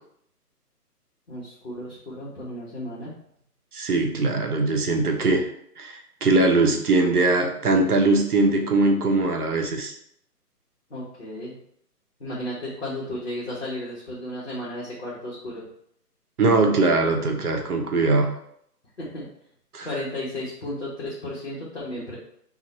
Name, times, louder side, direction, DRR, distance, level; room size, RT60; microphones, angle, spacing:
voice 1, 1.3-3.1 10.9-11.6 12.2-15.7 19.0-19.3 19.8-22.2, left 1 dB, 45° left, -7 dB, 0.8 m, -34 dB
voice 2, 3.7-5.4 5.8-9.9 16.4-18.3 19.7-19.9, right 2 dB, 65° right, 3 dB, 0.8 m, -21 dB
3.0 x 2.1 x 4.1 m, 0.71 s
hypercardioid pair, 175°, 48 cm